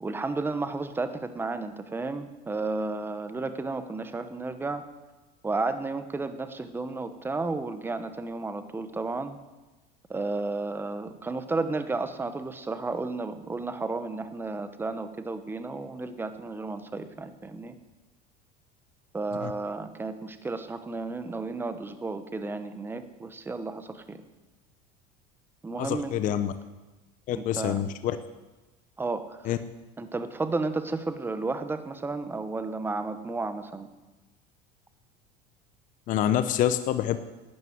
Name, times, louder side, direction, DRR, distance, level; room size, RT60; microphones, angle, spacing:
voice 1, 0.0-4.8 5.4-9.4 10.1-17.8 19.1-24.2 25.6-26.2 27.3-27.8 29.0-29.4 30.0-33.9, right 3 dB, 10° right, 10 dB, 1.1 m, -32 dB
voice 2, 25.8-26.5 27.3-28.2 29.4-29.6 36.1-37.2, left 11 dB, 45° left, 11 dB, 0.8 m, -26 dB
12.0 x 9.2 x 9.4 m, 1.1 s
supercardioid pair, 130°, 18 cm